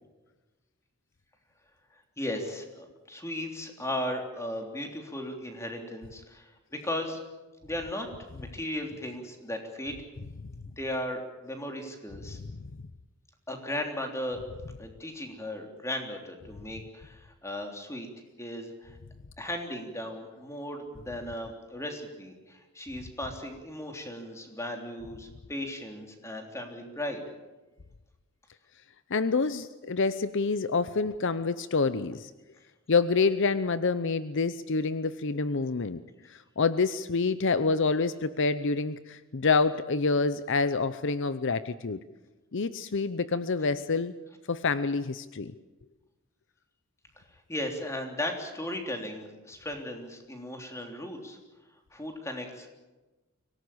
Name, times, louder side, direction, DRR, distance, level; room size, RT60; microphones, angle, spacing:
voice 1, 2.2-7.2 7.6-10.0 10.8-12.4 13.5-14.4 14.8-18.1 18.4-19.0 19.4-27.2 47.5-51.4 51.9-52.7, left 1 dB, 15° left, 3 dB, 3.3 m, -36 dB
voice 2, 29.1-32.3 32.9-36.0 36.3-42.0 42.5-44.1 44.5-45.5, left 4 dB, 60° left, 13 dB, 0.7 m, -27 dB
24.5 x 18.0 x 8.6 m, 1.2 s
head